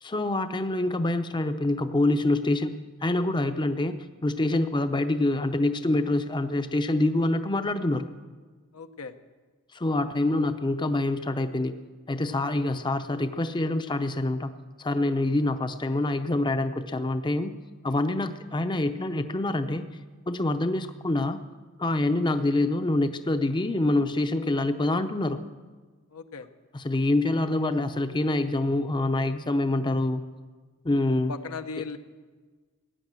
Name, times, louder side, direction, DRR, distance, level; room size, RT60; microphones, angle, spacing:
voice 1, 0.0-2.7 3.0-8.1 9.7-11.7 12.1-14.5 14.8-17.5 17.8-19.9 20.3-21.4 21.8-25.4 26.7-30.2 30.8-31.3, left 2 dB, 20° left, 9 dB, 0.6 m, -26 dB
voice 2, 8.7-9.1 26.1-26.5 31.3-32.0, left 4 dB, 90° left, 8 dB, 0.9 m, -37 dB
16.5 x 10.0 x 7.5 m, 1.4 s
head